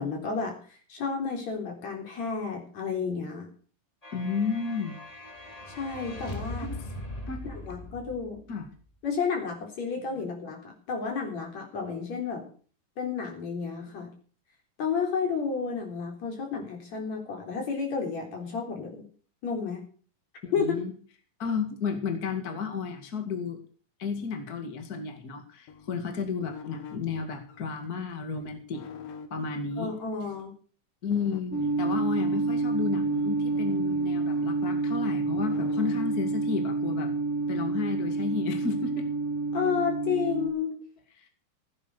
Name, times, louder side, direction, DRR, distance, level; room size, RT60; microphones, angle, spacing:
voice 1, 0.0-3.5 5.7-6.7 7.4-8.4 9.0-12.4 13.0-14.1 14.8-19.0 19.4-19.8 20.5-20.7 29.8-30.5 39.5-40.7, left 5 dB, 55° left, 2 dB, 5.0 m, -31 dB
sound 1, 4.0-8.7, left 1 dB, 15° left, 1.5 m, -40 dB
voice 2, 4.1-5.0 6.7-6.8 7.3-7.5 8.5-8.7 10.2-10.5 20.4-20.9 21.4-23.6 24.0-28.8 29.3-29.9 31.0-37.1 37.5-39.1 41.2-41.3, left 5 dB, 30° left, 5 dB, 2.1 m, -32 dB
sound 2, 25.7-30.4 31.1-36.0, left 6 dB, 80° left, 3.3 m, -45 dB
sound 3, 31.5-40.5, right 3 dB, 5° right, 2.4 m, -28 dB
16.0 x 9.4 x 6.5 m, 0.43 s
omnidirectional pair, 3.9 m